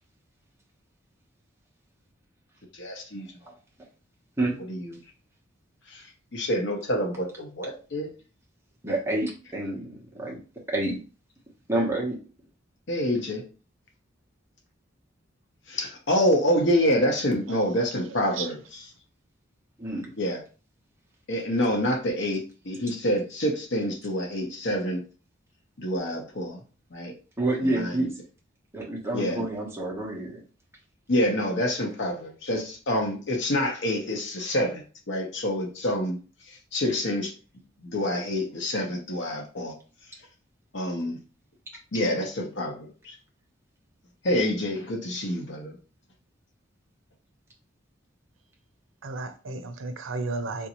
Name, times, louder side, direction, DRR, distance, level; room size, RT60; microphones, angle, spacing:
voice 1, 2.7-3.3 4.7-4.9 5.9-6.0 6.3-8.1 12.9-13.4 15.7-18.6 20.2-20.4 21.3-25.0 25.8-26.6 26.9-27.1 27.6-28.0 29.1-29.4 31.1-36.2 36.5-37.3 37.8-39.7 40.7-41.2 41.9-43.2 44.2-45.8, equal, 65° left, 1.0 m, -27 dB
voice 2, 8.8-10.4 10.7-11.0 11.7-12.2 19.8-20.1 27.4-28.1 28.7-30.4, right 2 dB, 15° right, 1.0 m, -28 dB
voice 3, 17.5-18.5 49.0-50.7, right 3 dB, 90° right, 0.6 m, -34 dB
3.6 x 2.7 x 3.0 m
head